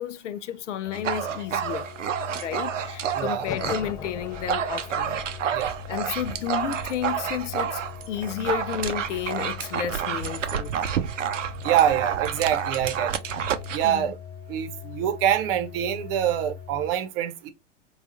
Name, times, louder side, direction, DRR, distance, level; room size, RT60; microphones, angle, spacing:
voice 1, 0.0-1.9 2.3-5.2 5.5-7.8 8.1-10.7 13.8-14.1, left 10 dB, 75° left, 0.5 m, -32 dB
sound 1, 0.8-16.9, left 8 dB, 45° left, 0.8 m, -41 dB
Dog, 0.9-3.9 4.2-13.9, right 8 dB, 85° right, 0.5 m, -29 dB
voice 2, 3.1-3.5 5.5-5.7 11.6-13.1 13.7-14.2 14.5-17.5, right 10 dB, 50° right, 0.7 m, -25 dB
sound 2, 3.4-9.6, left 6 dB, 10° left, 0.4 m, -42 dB
3.3 x 2.3 x 2.5 m
hypercardioid pair, 95°, 36 cm